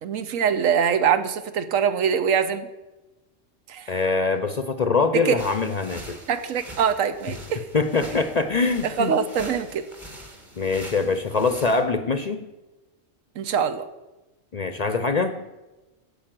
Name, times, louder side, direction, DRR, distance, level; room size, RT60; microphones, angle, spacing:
voice 1, 0.0-2.7 3.7-3.9 5.1-5.4 6.3-7.6 8.8-9.9 13.4-13.9, right 7 dB, 90° right, 11 dB, 1.2 m, -23 dB
voice 2, 3.9-6.2 7.7-9.2 10.6-12.5 14.5-15.3, left 4 dB, 45° left, 9 dB, 0.6 m, -23 dB
sound 1, 5.4-11.8, right 1 dB, 25° right, 1.4 m, -43 dB
9.0 x 7.1 x 7.5 m, 1.1 s
omnidirectional pair, 1.3 m